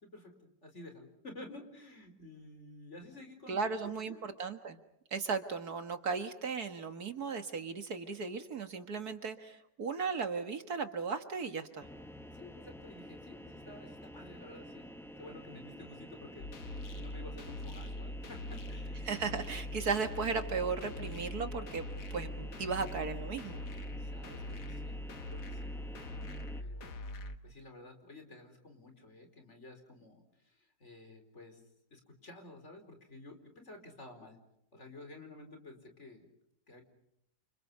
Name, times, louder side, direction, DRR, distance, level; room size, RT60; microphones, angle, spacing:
voice 1, 0.0-4.2 12.3-19.1 22.1-22.3 24.0-25.7 26.6-27.0 27.4-31.6 31.9-34.4 34.7-36.3 36.7-36.8, left 2 dB, 40° left, 5 dB, 4.7 m, -52 dB
voice 2, 3.5-4.8 5.1-11.9 19.0-23.6, right 5 dB, 65° right, 7 dB, 2.2 m, -36 dB
sound 1, 11.8-26.6, equal, ahead, 1.2 m, -49 dB
sound 2, 16.4-27.4, left 1 dB, 75° left, 2.1 m, -42 dB
29.5 x 27.5 x 5.4 m, 0.77 s
omnidirectional pair, 1.8 m